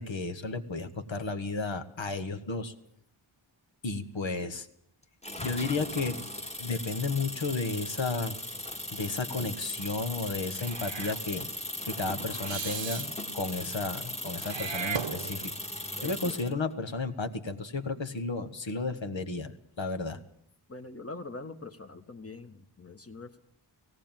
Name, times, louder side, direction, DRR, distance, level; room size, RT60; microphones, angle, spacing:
voice 1, 0.0-2.7 3.8-4.7 5.4-6.2 6.6-8.4 8.9-11.5 11.8-15.5 16.0-20.2, left 3 dB, 70° left, 8 dB, 1.7 m, -33 dB
sound 1, 5.2-16.5, left 1 dB, 15° left, 1.6 m, -38 dB
Meow / Hiss, 10.6-11.2 12.4-13.1 14.4-15.6, right 7 dB, 65° right, 0.9 m, -36 dB
voice 2, 16.0-16.4 20.7-23.4, left 3 dB, 30° left, 7 dB, 1.6 m, -43 dB
17.5 x 17.5 x 9.0 m, 0.70 s
wide cardioid pair, 65°, 48 cm